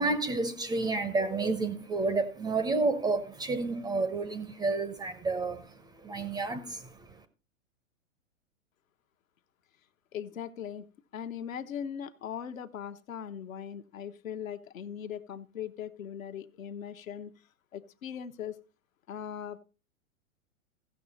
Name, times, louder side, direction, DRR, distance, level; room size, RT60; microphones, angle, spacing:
voice 1, 0.0-6.9, right 3 dB, 10° right, 0.5 m, -30 dB
voice 2, 10.1-10.9 11.1-17.3 17.7-18.6 19.1-19.6, left 8 dB, 75° left, 0.9 m, -39 dB
15.5 x 6.2 x 4.0 m
hypercardioid pair, 110°, 41 cm